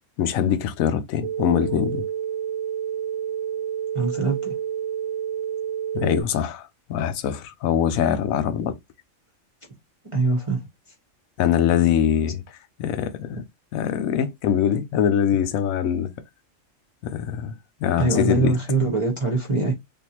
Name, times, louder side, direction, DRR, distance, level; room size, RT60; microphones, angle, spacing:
voice 1, 0.2-2.0 5.9-8.8 11.4-12.4 12.8-13.4 13.7-16.1 17.0-17.5 17.8-18.5, left 9 dB, 90° left, 1.0 m, -23 dB
sound 1, 1.2-6.2, right 9 dB, 80° right, 1.0 m, -29 dB
voice 2, 3.9-4.5 10.1-10.6 18.0-19.7, right 3 dB, 30° right, 0.7 m, -23 dB
3.5 x 2.6 x 2.8 m
omnidirectional pair, 1.4 m